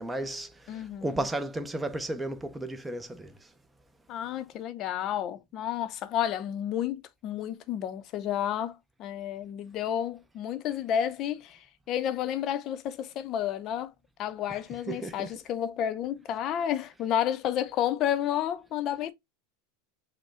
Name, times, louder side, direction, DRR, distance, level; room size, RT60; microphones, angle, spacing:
voice 1, 0.0-3.4 14.9-15.3, right 1 dB, 10° right, 0.7 m, -34 dB
voice 2, 0.7-1.2 4.1-13.9 14.2-19.1, left 10 dB, 45° left, 0.7 m, -31 dB
6.1 x 2.3 x 3.7 m
hypercardioid pair, 110°, 0 cm